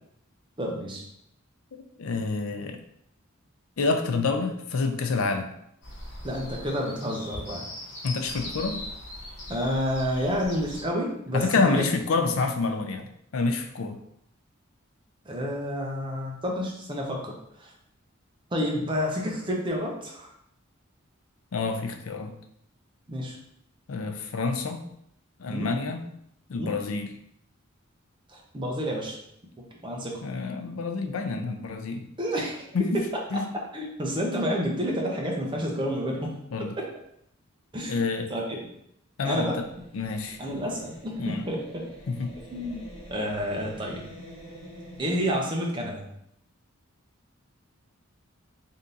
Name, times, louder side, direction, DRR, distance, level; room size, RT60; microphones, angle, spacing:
voice 1, 0.6-1.0 6.2-7.7 9.5-11.8 15.2-17.7 18.5-20.3 23.1-23.4 25.5-25.7 26.5-26.7 28.3-29.2 29.6-30.2 32.2-33.0 33.5-36.3 36.6-36.9 37.7-38.0 38.3-38.7 39.2-39.6 40.4-41.9 42.5-42.8 43.1-44.0 45.0-46.0, equal, 25° right, -1 dB, 0.8 m, -30 dB
voice 2, 2.0-2.8 3.8-5.5 8.0-8.8 11.3-14.0 21.5-22.3 23.9-24.9 25.4-26.1 26.5-27.1 30.2-32.0 32.7-33.0 33.3-33.4 36.5-36.7 37.9-38.3 39.2-39.5 39.9-40.6 41.2-41.5 42.1-42.3, left 4 dB, 80° left, 6 dB, 0.5 m, -28 dB
lark-eq, 5.8-10.8, left 1 dB, 55° left, 1.0 m, -39 dB
sound 1, 39.5-45.4, equal, 25° left, 1.2 m, -46 dB
3.6 x 2.8 x 3.8 m, 0.74 s
head